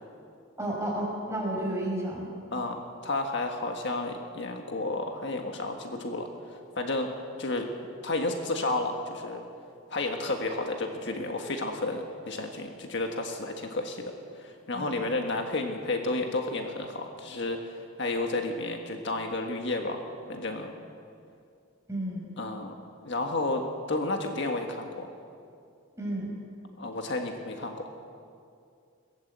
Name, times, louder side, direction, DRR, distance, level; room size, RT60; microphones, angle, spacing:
voice 1, 0.6-2.3 14.7-15.1 21.9-22.3 26.0-26.3, right 1 dB, 15° right, -2 dB, 5.2 m, -32 dB
voice 2, 2.5-6.3 6.7-7.1 7.4-7.7 8.0-9.4 9.9-14.1 14.4-20.0 20.3-20.7 22.4-22.7 23.0-25.1 26.8-27.9, left 2 dB, 55° left, 3 dB, 1.6 m, -31 dB
22.0 x 17.0 x 8.2 m, 2.4 s
head